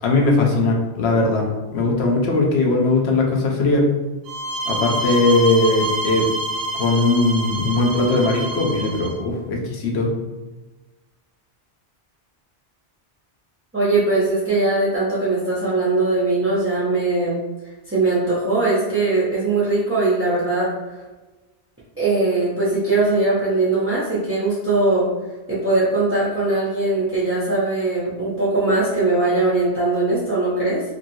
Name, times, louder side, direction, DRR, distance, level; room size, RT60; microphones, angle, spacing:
voice 1, 0.0-1.5 1.7-3.9 4.7-6.2 6.7-10.1, left 2 dB, 70° left, 0 dB, 0.9 m, -19 dB
sound 1, 4.3-9.2, right 2 dB, 70° right, 0.8 m, -27 dB
voice 2, 13.7-17.4 17.9-21.0 22.0-25.1 25.5-30.8, right 2 dB, 20° right, -9 dB, 0.4 m, -20 dB
2.9 x 2.6 x 2.6 m, 1.2 s
omnidirectional pair, 1.1 m